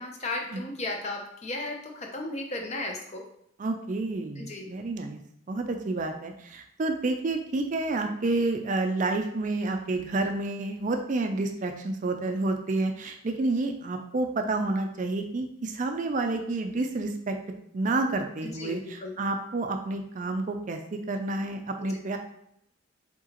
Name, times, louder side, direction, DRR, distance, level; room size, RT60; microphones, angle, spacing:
voice 1, 0.0-3.3 4.4-4.7 18.1-18.2 18.4-18.7 19.0-19.2 21.8-21.9, left 2 dB, 35° left, 2 dB, 0.7 m, -35 dB
voice 2, 3.6-5.2 5.5-17.4 17.7-22.2, right 2 dB, 40° right, 5 dB, 0.4 m, -29 dB
4.7 x 3.7 x 2.9 m, 0.73 s
head